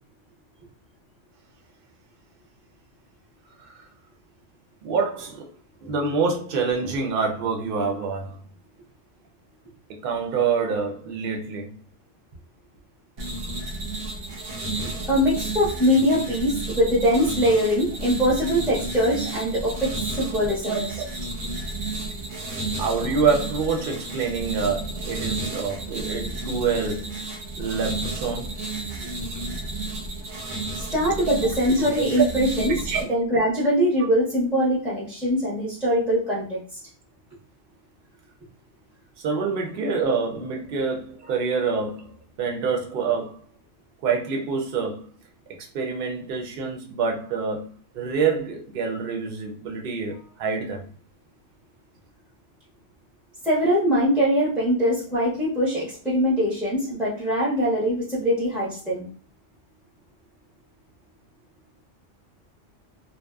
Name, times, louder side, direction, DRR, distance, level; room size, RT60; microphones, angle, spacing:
voice 1, 4.8-5.5 5.8-8.4 9.9-11.8 20.7-21.1 22.8-27.2 27.6-28.5 32.0-32.1 32.9-33.1 39.2-42.1 42.4-43.4 44.0-45.1 45.7-50.9, right 5 dB, 60° right, 0.6 m, -26 dB
sound 1, 13.2-33.0, right 2 dB, 85° right, 1.0 m, -32 dB
voice 2, 14.7-20.8 30.8-36.6 53.4-59.1, equal, ahead, 0.5 m, -22 dB
2.7 x 2.0 x 2.2 m
omnidirectional pair, 1.3 m